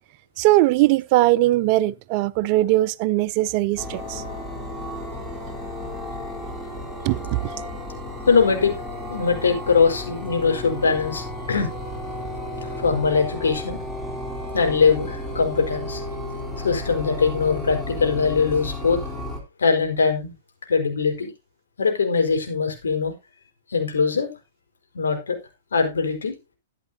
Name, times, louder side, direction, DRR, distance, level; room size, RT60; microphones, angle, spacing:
voice 1, 0.4-4.2 7.0-7.3, right 17 dB, 40° right, 0.5 m, -20 dB
sound 1, 3.8-19.4, left 1 dB, 5° left, 3.8 m, -33 dB
voice 2, 8.3-8.7 9.1-11.7 12.8-13.8 14.5-16.0 16.6-19.0 19.6-20.3 20.7-21.3 21.8-23.1 23.7-24.3 24.9-25.4 25.7-26.3, left 5 dB, 75° left, 4.7 m, -21 dB
14.0 x 11.0 x 2.8 m
figure-of-eight pair, 110°, 0 cm